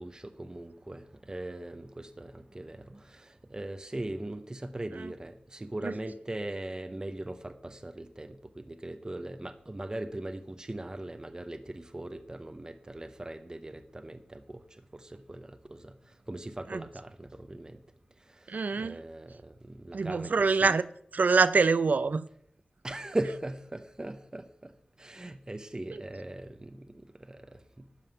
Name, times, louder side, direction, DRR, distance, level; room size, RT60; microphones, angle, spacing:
voice 1, 0.0-14.6 14.9-15.9 16.3-17.8 18.3-20.8 22.8-24.7 25.0-27.9, right 1 dB, 25° right, 0.9 m, -40 dB
voice 2, 18.5-19.0 19.9-20.8 21.1-22.2, right 4 dB, 80° right, 0.6 m, -25 dB
12.5 x 5.7 x 9.0 m
wide cardioid pair, 70°, 3 cm